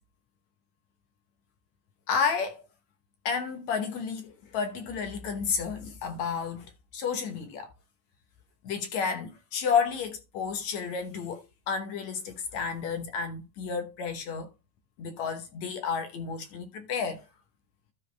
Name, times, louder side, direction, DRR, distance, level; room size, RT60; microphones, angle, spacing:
voice 1, 2.1-2.6 3.2-7.7 8.6-14.5 15.0-17.2, left 6 dB, 70° left, 1.7 m, -31 dB
13.5 x 4.7 x 3.3 m
omnidirectional pair, 4.5 m